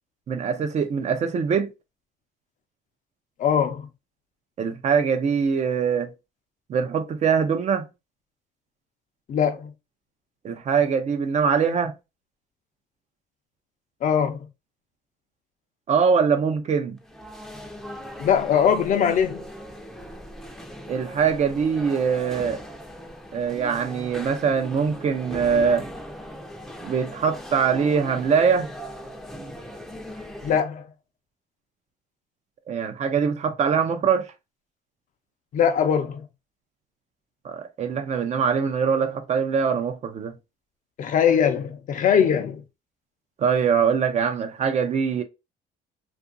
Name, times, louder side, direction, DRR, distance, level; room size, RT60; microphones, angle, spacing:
voice 1, 0.3-1.7 4.6-6.1 6.7-7.9 10.4-11.9 15.9-17.0 20.9-22.6 23.3-25.9 26.8-28.7 32.7-34.3 37.4-40.3 43.4-45.2, right 6 dB, 40° right, 0.5 m, -23 dB
voice 2, 3.4-3.9 9.3-9.7 14.0-14.5 18.2-19.4 30.4-30.9 35.5-36.2 41.0-42.6, left 8 dB, 50° left, 0.5 m, -21 dB
sound 1, 17.0-30.6, equal, ahead, 0.5 m, -39 dB
2.7 x 2.5 x 2.5 m
cardioid pair, 110°, 17 cm